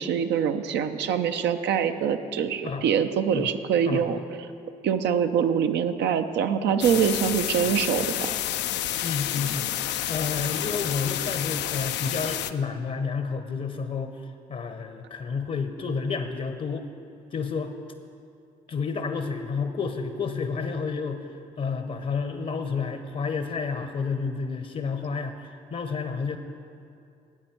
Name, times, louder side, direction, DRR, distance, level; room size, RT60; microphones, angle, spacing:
voice 1, 0.0-4.2 4.8-8.3, right 8 dB, 70° right, 8 dB, 0.6 m, -24 dB
sound 1, 6.8-12.5, left 12 dB, 70° left, 0.4 m, -29 dB
voice 2, 9.0-9.7 10.1-14.2 14.5-16.9 17.3-17.7 18.7-21.3 21.6-26.4, left 5 dB, 45° left, 7 dB, 0.8 m, -30 dB
13.5 x 8.7 x 4.5 m, 2.5 s
hypercardioid pair, 45°, 19 cm